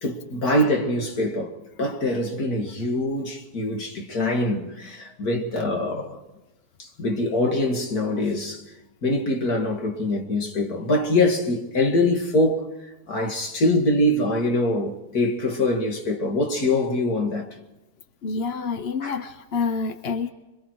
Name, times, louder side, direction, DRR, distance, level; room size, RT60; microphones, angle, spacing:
voice 1, 0.0-6.2 6.8-8.6 9.0-17.5 19.0-19.2, left 1 dB, 65° left, 2.7 m, -24 dB
voice 2, 18.2-20.3, left 5 dB, 50° left, 0.9 m, -27 dB
26.5 x 23.0 x 4.7 m
omnidirectional pair, 1.7 m